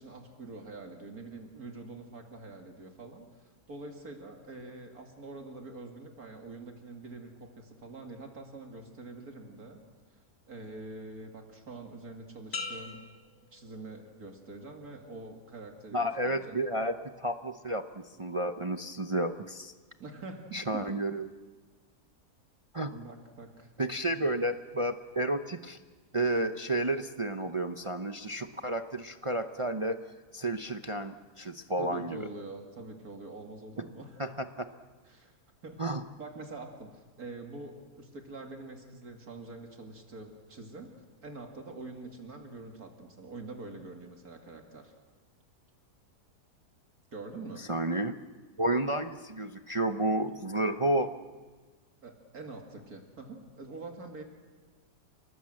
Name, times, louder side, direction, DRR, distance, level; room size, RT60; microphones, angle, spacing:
voice 1, 0.0-9.8 10.5-13.0 13.5-16.6 20.0-20.8 22.9-24.3 31.8-34.2 35.0-35.4 35.6-35.8 36.2-41.0 41.2-44.9 47.1-47.6 52.0-54.2, right 3 dB, 60° right, 3 dB, 2.6 m, -45 dB
sound 1, 12.5-14.3 14.8-15.3, left 4 dB, 45° left, 1.8 m, -42 dB
voice 2, 15.9-19.7 20.5-21.3 22.7-22.9 23.8-25.8 26.1-30.0 30.3-32.3 34.2-34.7 35.8-36.0 47.6-48.1 48.6-51.1, right 1 dB, 40° right, 7 dB, 0.4 m, -31 dB
29.5 x 19.0 x 7.8 m, 1.4 s
omnidirectional pair, 1.8 m